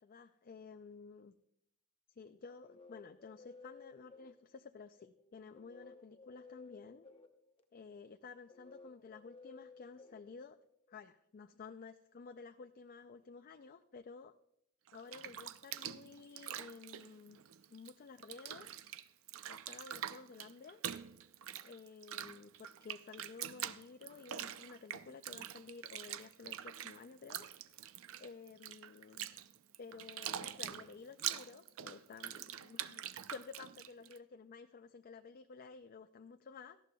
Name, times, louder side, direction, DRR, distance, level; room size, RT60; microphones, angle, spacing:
voice 1, 0.0-1.4 2.1-7.1 7.7-10.6 10.9-14.4 14.9-17.4 17.7-18.9 19.5-20.8 21.6-27.5 28.2-29.3 29.8-36.8, left 5 dB, 45° left, 7 dB, 0.4 m, -53 dB
sound 1, 2.3-11.0, left 4 dB, 25° left, 0.8 m, -58 dB
Bathtub (filling or washing), 14.9-17.9 18.2-34.2, right 10 dB, 65° right, 0.5 m, -45 dB
17.5 x 13.0 x 2.3 m, 0.78 s
head